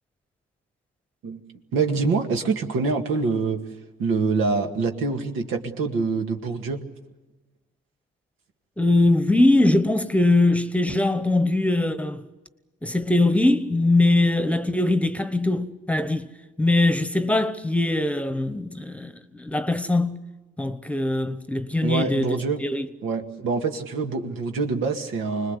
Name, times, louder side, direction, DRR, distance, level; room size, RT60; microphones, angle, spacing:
voice 1, 1.7-3.6 4.0-6.8 21.8-22.6 23.0-25.6, right 4 dB, 90° right, 2.0 m, -25 dB
voice 2, 8.8-12.2 12.8-16.3 16.6-20.2 20.6-22.9, left 2 dB, 5° left, 1.1 m, -21 dB
25.5 x 20.5 x 8.2 m
cardioid pair, 90°, 20 cm